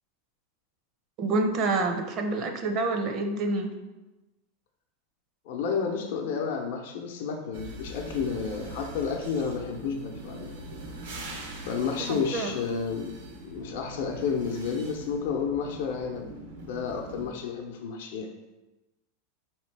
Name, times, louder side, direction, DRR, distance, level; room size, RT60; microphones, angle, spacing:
voice 1, 1.2-3.7 12.0-12.6, right 2 dB, 45° right, 5 dB, 0.6 m, -27 dB
voice 2, 5.5-10.5 11.6-13.1 13.4-16.4 16.6-18.3, left 6 dB, 70° left, 2 dB, 0.6 m, -31 dB
sound 1, 7.5-17.3, right 1 dB, 90° right, 0.8 m, -42 dB
4.9 x 3.0 x 3.3 m, 1.1 s
hypercardioid pair, 120°, 0 cm